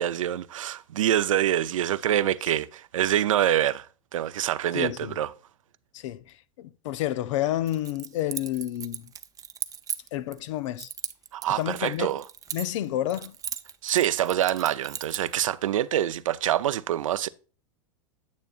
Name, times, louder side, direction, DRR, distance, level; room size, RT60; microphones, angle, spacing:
voice 1, 0.0-3.9 4.1-5.3 11.3-12.2 13.8-17.3, right 11 dB, 85° right, 0.6 m, -25 dB
voice 2, 4.7-5.1 5.9-9.1 10.1-10.9 11.6-12.1 12.5-13.3, left 13 dB, 70° left, 0.7 m, -30 dB
Keys jangling, 7.7-10.4 10.8-12.8 13.1-15.3, right 8 dB, 20° right, 0.6 m, -37 dB
9.4 x 8.0 x 2.5 m
hypercardioid pair, 105°, 16 cm